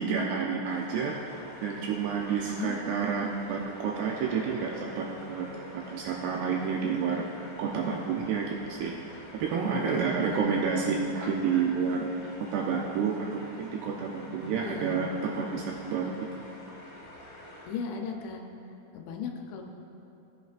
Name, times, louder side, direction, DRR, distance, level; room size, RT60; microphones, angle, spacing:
voice 1, 0.0-1.3 1.6-5.5 5.7-7.2 7.6-8.9 9.3-12.1 12.4-16.5, right 6 dB, 85° right, 0 dB, 2.4 m, -30 dB
sound 1, 0.6-17.7, left 1 dB, 50° left, 3.7 m, -48 dB
voice 2, 2.4-2.8 9.5-10.7 14.5-15.0 17.7-18.4 18.9-19.6, left 5 dB, 80° left, 2 dB, 3.0 m, -37 dB
sound 2, 3.9-14.9, right 2 dB, 65° right, 1.6 m, -51 dB
17.0 x 8.0 x 2.5 m, 2.8 s
omnidirectional pair, 5.3 m